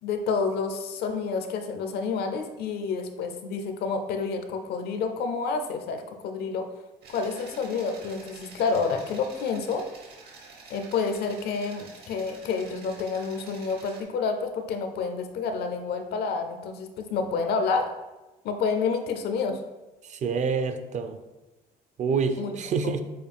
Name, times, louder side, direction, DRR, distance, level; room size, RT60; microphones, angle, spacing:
voice 1, 0.0-6.7 7.1-9.9 10.7-17.9 18.4-19.6 22.4-22.9, left 5 dB, 70° left, 7 dB, 0.6 m, -29 dB
sound 1, 7.0-14.0, right 3 dB, 70° right, 1.1 m, -49 dB
voice 2, 20.0-21.2 22.0-23.0, right 5 dB, 45° right, 8 dB, 0.5 m, -27 dB
6.5 x 2.3 x 3.4 m, 1.1 s
cardioid pair, 110°, 17 cm